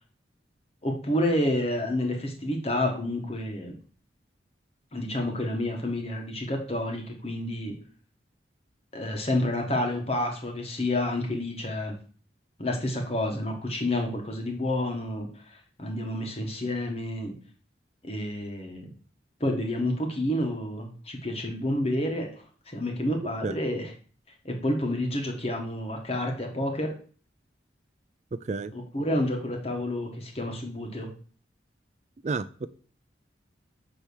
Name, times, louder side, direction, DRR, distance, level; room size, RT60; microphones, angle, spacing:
voice 1, 0.8-3.7 4.9-7.7 8.9-11.9 12.6-17.3 18.0-18.9 19.4-22.3 22.7-23.9 24.4-26.9 28.7-31.1, left 1 dB, 35° left, 2 dB, 1.6 m, -29 dB
voice 2, 28.3-28.7 32.2-32.7, right 3 dB, 40° right, 14 dB, 0.3 m, -31 dB
8.5 x 3.4 x 6.3 m, 0.41 s
head